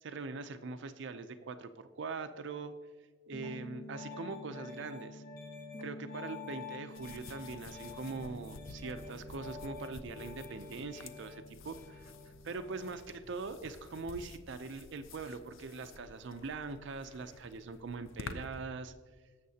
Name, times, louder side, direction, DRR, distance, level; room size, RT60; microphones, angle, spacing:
voice 1, 0.0-2.7 3.3-5.2 5.8-12.1 12.4-18.9, right 4 dB, 60° right, 9 dB, 0.5 m, -42 dB
Piano, 3.3-13.0, left 3 dB, 45° left, 1.7 m, -47 dB
sound 1, 6.9-18.7, left 4 dB, 75° left, 0.5 m, -51 dB
17.5 x 7.3 x 2.8 m, 1.4 s
head